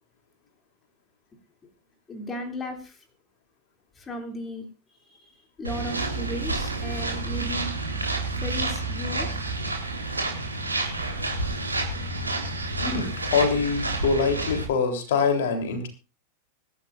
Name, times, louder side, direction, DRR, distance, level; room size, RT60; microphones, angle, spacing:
voice 1, 2.1-3.0 3.9-7.7 8.4-9.3, left 1 dB, 20° left, 4 dB, 3.2 m, -36 dB
sound 1, 5.6-14.7, right 2 dB, 80° right, 3.8 m, -29 dB
voice 2, 12.8-15.9, left 5 dB, 55° left, 5 dB, 3.7 m, -24 dB
24.5 x 12.5 x 2.6 m, 0.32 s
figure-of-eight pair, 90°, 0 cm